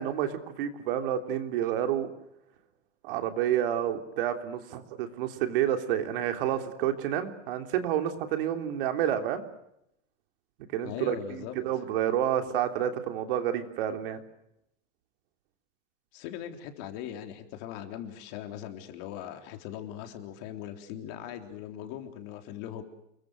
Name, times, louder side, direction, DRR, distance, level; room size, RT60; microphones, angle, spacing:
voice 1, 0.0-2.1 3.0-9.4 10.7-14.2, right 10 dB, 50° right, 7 dB, 3.3 m, -29 dB
voice 2, 10.8-11.6 16.1-22.8, left 11 dB, 40° left, 6 dB, 3.6 m, -40 dB
29.5 x 23.0 x 6.6 m, 0.80 s
supercardioid pair, 170°, 35 cm